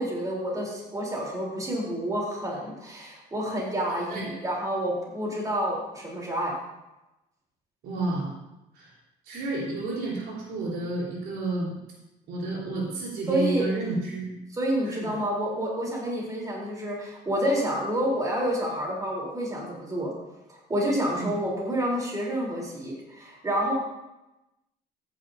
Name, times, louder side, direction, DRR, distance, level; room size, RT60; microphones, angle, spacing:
voice 1, 0.0-6.5 13.3-13.7 14.5-20.1 20.5-23.7, equal, 20° right, -3 dB, 3.7 m, -29 dB
voice 2, 7.8-8.3 8.7-8.9 9.3-11.8 12.3-14.3 14.9-15.1 21.1-21.3, right 2 dB, 75° right, -4 dB, 4.0 m, -30 dB
14.0 x 10.0 x 2.8 m, 0.95 s
cardioid pair, 110°, 17 cm